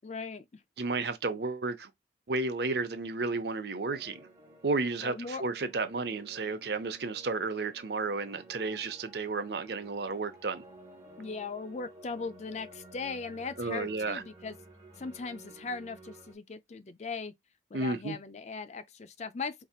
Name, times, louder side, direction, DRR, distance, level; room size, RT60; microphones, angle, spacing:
voice 1, 0.0-0.6 5.0-5.4 11.2-14.6 15.0-17.3 17.7-19.5, left 4 dB, 40° left, 0.4 m, -39 dB
voice 2, 0.8-1.9 2.3-4.3 4.6-10.6 13.6-14.2 17.7-18.2, right 3 dB, 65° right, 0.7 m, -32 dB
sound 1, 3.8-16.3, right 2 dB, 20° right, 1.6 m, -53 dB
4.8 x 2.8 x 2.3 m
head